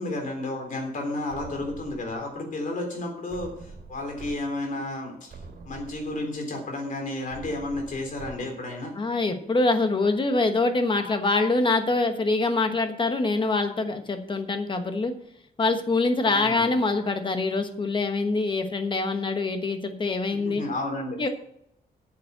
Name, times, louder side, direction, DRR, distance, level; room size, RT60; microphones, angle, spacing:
voice 1, 0.0-5.3 5.7-8.9 16.2-16.7 20.3-21.3, left 2 dB, 55° left, 2 dB, 3.5 m, -32 dB
sound 1, 1.3-2.3 3.3-4.3 4.8-4.9 5.3-6.3 7.3-8.3, right 4 dB, 65° right, 3.3 m, -44 dB
voice 2, 9.0-15.1 15.6-20.6 21.2-21.3, left 3 dB, 30° left, 7 dB, 1.2 m, -24 dB
9.2 x 7.2 x 7.9 m, 0.76 s
wide cardioid pair, 165°, 17 cm